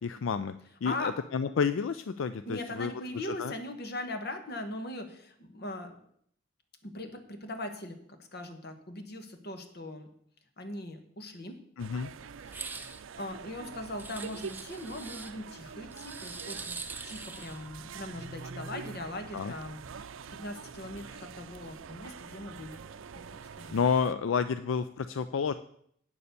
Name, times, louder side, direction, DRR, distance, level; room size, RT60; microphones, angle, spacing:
voice 1, 0.0-0.5 0.8-2.9 3.2-3.5 11.8-12.1 19.3-19.5 23.7-25.5, left 6 dB, 80° left, 12 dB, 0.4 m, -30 dB
voice 2, 0.8-1.1 2.4-6.0 6.8-10.1 10.6-11.6 12.5-22.8 23.1-23.8, left 1 dB, 55° left, 7 dB, 1.3 m, -40 dB
sound 1, 11.8-24.1, right 5 dB, 85° right, 0.5 m, -45 dB
sound 2, 12.5-13.0 14.0-15.3 15.9-17.6, right 4 dB, 10° right, 0.5 m, -42 dB
8.7 x 6.9 x 6.7 m, 0.66 s
head